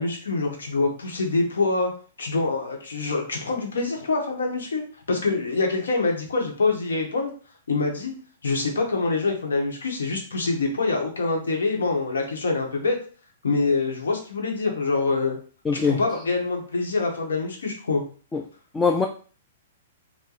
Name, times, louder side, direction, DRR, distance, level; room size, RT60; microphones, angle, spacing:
voice 1, 0.0-1.9 2.2-4.8 5.1-7.3 7.7-8.1 8.4-13.0 13.4-15.4 15.8-18.0, left 3 dB, 85° left, 2 dB, 1.0 m, -25 dB
voice 2, 15.6-16.0 18.3-18.4 18.7-19.1, left 5 dB, 15° left, 2 dB, 0.3 m, -22 dB
2.9 x 2.1 x 3.8 m, 0.41 s
hypercardioid pair, 130°, 0 cm